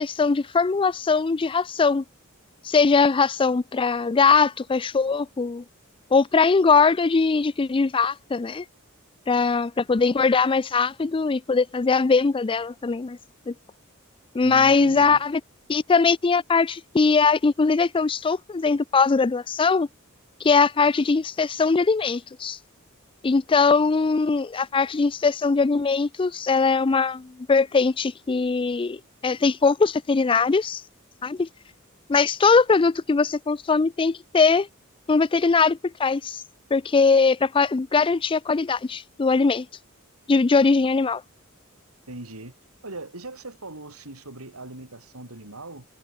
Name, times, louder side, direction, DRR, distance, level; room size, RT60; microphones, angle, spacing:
voice 1, 0.0-2.0 2.6-5.6 6.1-8.6 9.3-13.2 13.5-13.6 14.3-15.4 15.7-19.9 20.4-22.6 23.2-30.8 31.2-31.5 32.1-34.7 35.1-36.4 36.7-39.7 40.3-41.2, left 4 dB, 25° left, 0.4 m, -21 dB
voice 2, 14.4-15.2 42.1-42.5 42.8-45.8, right 2 dB, 90° right, 4.3 m, -39 dB
head